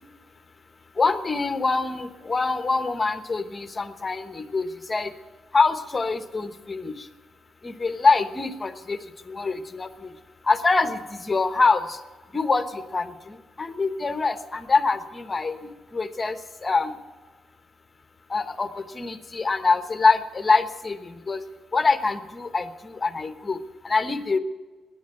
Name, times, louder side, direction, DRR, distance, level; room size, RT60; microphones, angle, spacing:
voice 1, 1.0-5.1 5.5-6.9 7.6-9.0 9.3-10.1 10.5-12.0 12.3-17.0 18.3-21.4 21.7-24.4, left 4 dB, 25° left, 9 dB, 1.1 m, -25 dB
16.5 x 10.5 x 7.8 m, 1.3 s
cardioid pair, 115°, 0 cm